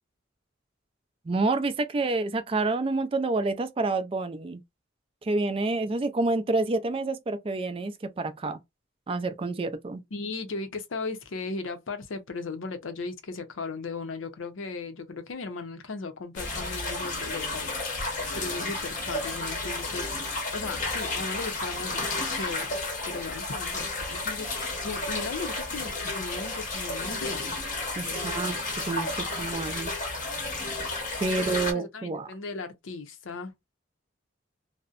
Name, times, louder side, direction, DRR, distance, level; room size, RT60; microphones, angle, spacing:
voice 1, 1.3-4.6 5.2-8.6 9.1-10.0 18.6-18.7 28.0-29.9 31.2-32.3, right 3 dB, 30° right, 0.3 m, -28 dB
voice 2, 10.1-22.0 22.3-22.8 23.1-24.5 24.8-27.6 28.0-28.5 31.4-33.5, left 3 dB, 80° left, 0.6 m, -37 dB
sound 1, 16.4-31.7, left 2 dB, 40° left, 0.7 m, -32 dB
2.6 x 2.1 x 2.3 m
head